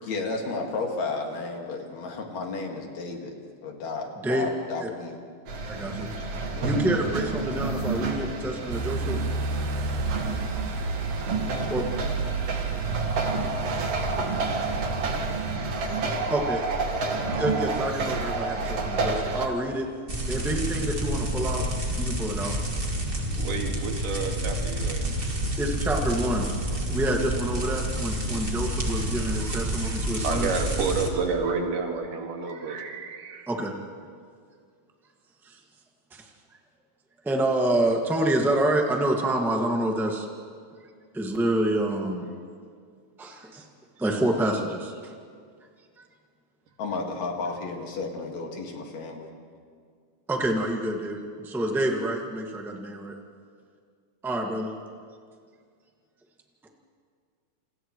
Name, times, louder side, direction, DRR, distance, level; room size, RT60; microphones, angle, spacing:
voice 1, 0.0-3.4 3.6-5.2 6.5-6.8 46.8-49.3, left 3 dB, 60° left, 1 dB, 3.1 m, -33 dB
sound 1, 5.5-19.5, right 3 dB, 50° right, 2.5 m, -29 dB
voice 2, 5.7-6.1 6.6-9.2 11.7-11.8 16.3-16.7 17.3-19.9 20.3-21.6 22.0-22.5 25.6-26.5 26.9-30.5 33.5-33.7 35.4-35.6 36.1-36.3 37.2-40.3 41.1-42.3 43.2-43.6 44.0-45.1 50.3-53.1 54.2-54.7, right 1 dB, ahead, 1 dB, 0.8 m, -27 dB
sound 2, 8.7-15.6, right 4 dB, 70° right, 2.3 m, -32 dB
sound 3, 20.1-31.1, right 1 dB, 20° right, 1.6 m, -29 dB
voice 3, 23.4-25.0 28.3-28.5 29.2-33.5, right 4 dB, 90° right, 1 dB, 3.6 m, -31 dB
29.0 x 28.5 x 3.2 m, 2.1 s
omnidirectional pair, 3.8 m